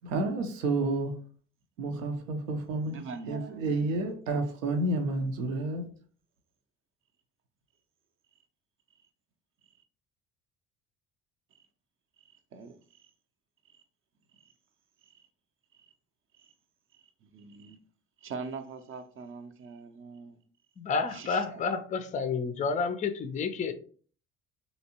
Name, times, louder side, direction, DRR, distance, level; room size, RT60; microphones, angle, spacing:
voice 1, 0.1-1.1 1.8-5.8, right 2 dB, 75° right, 0.7 m, -30 dB
voice 2, 2.8-4.1 12.5-12.7 17.2-17.8 18.2-20.4 21.1-21.6, right 4 dB, 35° right, 0.5 m, -42 dB
voice 3, 20.8-23.7, left 5 dB, 20° left, 0.4 m, -30 dB
3.2 x 2.8 x 2.8 m
hypercardioid pair, 55°, 39 cm